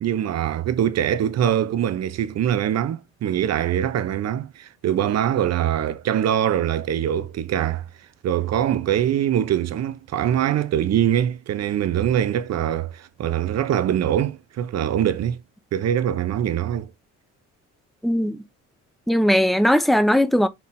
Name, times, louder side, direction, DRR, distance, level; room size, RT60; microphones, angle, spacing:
voice 1, 0.0-7.8 8.2-15.4 15.7-16.9, right 10 dB, 60° right, 0.6 m, -23 dB
voice 2, 18.0-18.4 19.1-20.5, equal, ahead, 0.5 m, -18 dB
4.3 x 3.5 x 2.5 m
cardioid pair, 90°, 30 cm